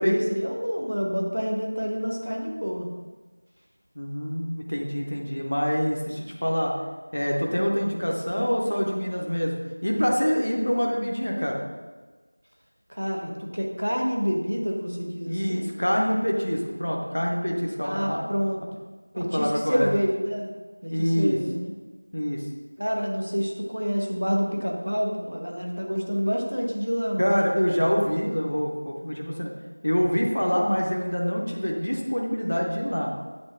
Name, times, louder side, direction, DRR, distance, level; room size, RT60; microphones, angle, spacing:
voice 1, 0.0-2.9 12.9-15.8 17.8-18.6 19.1-20.5 20.8-21.7 22.8-27.3, equal, 50° right, 1 dB, 0.9 m, -28 dB
voice 2, 4.0-6.7 7.1-11.6 15.2-18.2 19.2-19.9 20.9-21.4 22.1-22.4 27.2-29.5 29.8-33.1, equal, 25° left, 0 dB, 0.4 m, -25 dB
8.0 x 3.6 x 3.6 m, 1.3 s
figure-of-eight pair, 180°, 0 cm